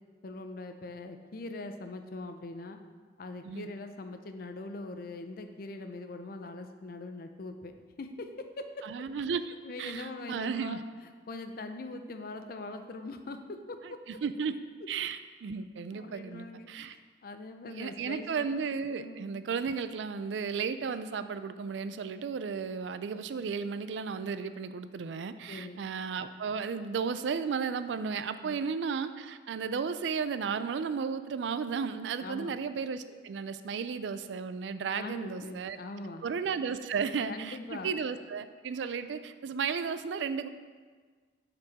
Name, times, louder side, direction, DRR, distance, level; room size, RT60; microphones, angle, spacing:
voice 1, 0.2-2.8 3.2-8.9 9.6-10.8 11.3-14.0 15.9-18.5 19.0-19.3 25.5-25.9 28.4-28.6 32.2-32.6 34.9-36.3 37.3-37.9, left 2 dB, 55° left, 7 dB, 0.5 m, -42 dB
voice 2, 8.8-10.8 13.8-14.6 14.9-17.0 17.7-35.8 36.2-40.5, right 6 dB, 90° right, 11 dB, 0.4 m, -34 dB
7.9 x 4.4 x 4.1 m, 1.5 s
head